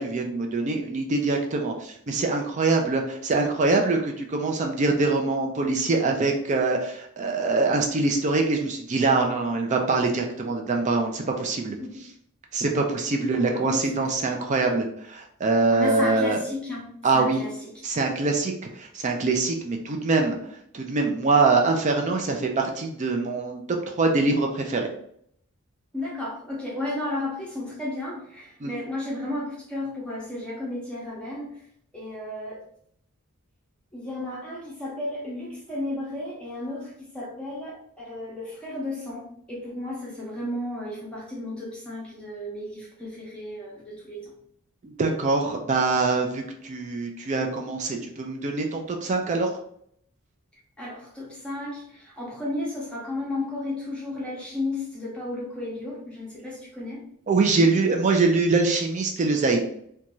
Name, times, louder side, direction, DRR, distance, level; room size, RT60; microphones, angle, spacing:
voice 1, 0.0-11.8 12.5-16.4 17.0-17.4 17.8-20.4 20.7-24.9 28.6-28.7 44.8-49.5 57.3-59.6, right 3 dB, 35° right, 2 dB, 0.4 m, -24 dB
voice 2, 13.3-13.8 15.7-16.9 17.1-17.5 25.9-31.6 31.9-32.6 33.9-44.3 50.8-57.0, left 1 dB, 5° left, -5 dB, 0.7 m, -33 dB
2.6 x 2.2 x 3.0 m, 0.67 s
head